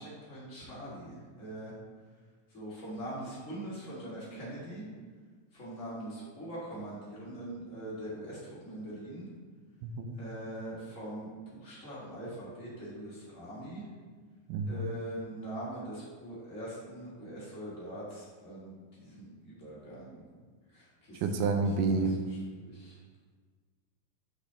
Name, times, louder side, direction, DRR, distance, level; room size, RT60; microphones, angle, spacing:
voice 1, 0.0-1.7 2.5-4.8 5.5-9.3 10.1-13.8 14.6-20.2 20.7-23.0, right 1 dB, 30° left, -8 dB, 1.6 m, -42 dB
voice 2, 9.8-10.2 14.5-14.9 21.2-22.1, right 3 dB, 80° right, 6 dB, 2.1 m, -29 dB
6.1 x 5.9 x 3.4 m, 1.5 s
omnidirectional pair, 3.8 m